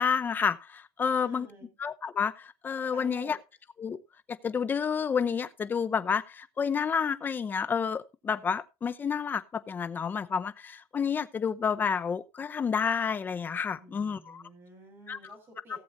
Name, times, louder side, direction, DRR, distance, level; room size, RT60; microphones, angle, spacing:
voice 1, 0.0-1.5 1.8-3.4 3.8-4.0 4.3-14.4 15.1-15.3 15.7-15.8, left 6 dB, 20° left, 12 dB, 0.7 m, -30 dB
voice 2, 1.1-1.7 2.9-3.4 13.7-15.8, right 2 dB, 25° right, 3 dB, 6.2 m, -51 dB
17.5 x 7.9 x 2.7 m, 0.27 s
cardioid pair, 150°, 9 cm